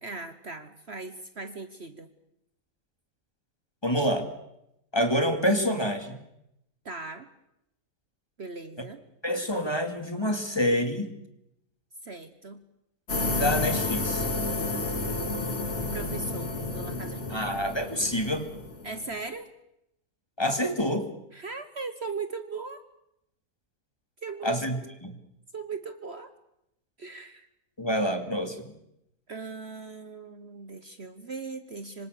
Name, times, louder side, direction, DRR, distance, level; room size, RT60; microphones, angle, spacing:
voice 1, 0.0-2.1 6.8-7.3 8.4-9.0 12.0-12.6 15.9-17.6 18.8-19.5 21.3-22.8 24.2-24.6 24.8-24.9 25.5-26.3 27.0-27.5 29.3-32.1, right 4 dB, 45° right, 10 dB, 1.5 m, -39 dB
voice 2, 3.8-4.3 4.9-6.2 9.2-11.1 13.3-14.3 17.3-18.4 20.4-21.1 24.4-24.8 25.0-25.1 27.8-28.7, equal, 15° left, 6 dB, 2.6 m, -27 dB
sound 1, 13.1-19.2, left 2 dB, 50° left, 3.0 m, -31 dB
26.0 x 25.5 x 6.6 m, 0.82 s
omnidirectional pair, 1.6 m